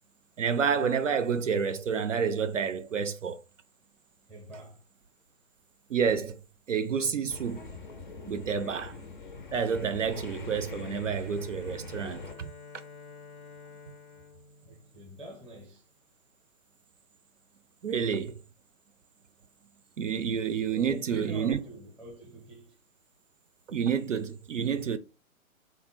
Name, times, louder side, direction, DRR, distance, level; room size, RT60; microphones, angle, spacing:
voice 1, 0.4-3.4 5.9-6.4 6.7-7.7 8.3-9.0 9.5-12.5 17.8-18.4 20.0-21.6 23.7-25.0, right 6 dB, 60° right, 0.5 m, -29 dB
voice 2, 4.3-4.8 14.6-15.9 20.7-22.8, right 1 dB, ahead, 0.6 m, -44 dB
sound 1, 7.3-12.3, left 3 dB, 35° left, 0.5 m, -43 dB
Bowed string instrument, 10.8-15.6, left 5 dB, 90° left, 0.8 m, -51 dB
3.6 x 2.1 x 4.0 m
figure-of-eight pair, 130°, 42 cm